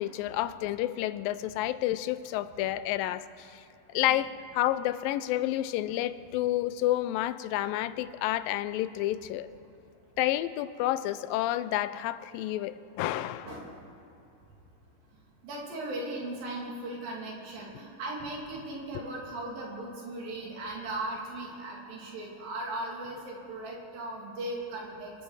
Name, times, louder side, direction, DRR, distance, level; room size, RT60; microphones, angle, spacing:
voice 1, 0.0-3.6 3.9-9.5 10.2-13.5, left 14 dB, 85° left, 14 dB, 2.3 m, -30 dB
voice 2, 15.4-25.1, right 2 dB, 80° right, -2 dB, 4.4 m, -38 dB
24.5 x 12.0 x 4.8 m, 2.8 s
omnidirectional pair, 4.1 m